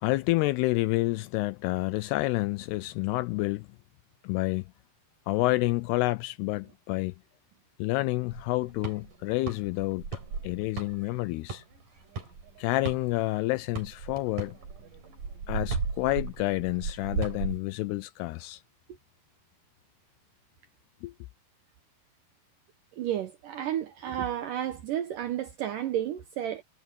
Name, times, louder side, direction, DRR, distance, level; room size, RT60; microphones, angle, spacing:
voice 1, 0.0-3.7 4.2-4.6 5.3-7.1 7.8-10.1 10.4-11.6 12.6-14.6 15.5-18.6 21.0-21.1, left 20 dB, 85° left, 2.4 m, -29 dB
sound 1, 8.3-13.4 13.8-17.6, right 4 dB, 50° right, 6.0 m, -36 dB
voice 2, 23.0-26.6, right 11 dB, 75° right, 2.0 m, -32 dB
omnidirectional pair, 5.0 m